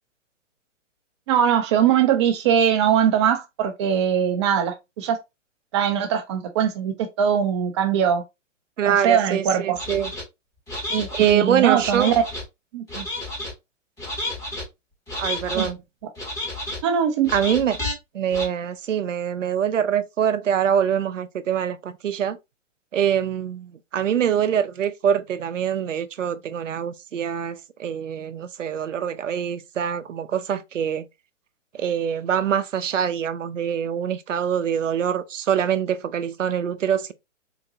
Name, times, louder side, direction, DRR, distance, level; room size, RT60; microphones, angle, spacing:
voice 1, 1.3-5.2 5.7-8.2 8.9-9.8 10.9-12.1 12.7-13.0 15.5-15.7 16.8-17.3, right 8 dB, 25° right, 0.5 m, -21 dB
voice 2, 8.8-10.1 11.1-12.1 15.2-15.8 17.3-17.8 18.1-22.4 22.9-31.1 31.8-37.1, right 8 dB, 80° right, 0.5 m, -24 dB
sound 1, 9.8-10.2 10.7-11.3 11.8-12.4 12.9-13.5 14.0-14.6 15.1-15.7 16.2-16.8 17.2-17.9 18.3-18.5, left 2 dB, 10° left, 0.8 m, -31 dB
3.8 x 2.2 x 2.6 m
figure-of-eight pair, 125°, 38 cm